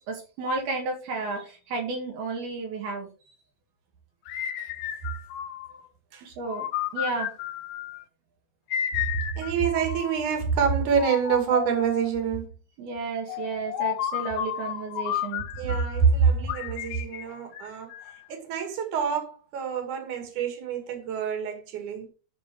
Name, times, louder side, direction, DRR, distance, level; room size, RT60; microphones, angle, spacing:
voice 1, 0.1-3.1 6.2-6.7 6.9-7.3 12.8-15.5, right 3 dB, 75° right, 3.6 m, -32 dB
sound 1, 4.3-5.9 6.5-8.0 8.7-10.3 11.0-12.2 13.3-16.0 16.5-18.3, left 10 dB, 80° left, 2.7 m, -32 dB
voice 2, 9.4-12.5 15.5-17.9 18.3-22.1, right 6 dB, 55° right, 3.5 m, -26 dB
12.5 x 4.6 x 4.7 m
omnidirectional pair, 4.4 m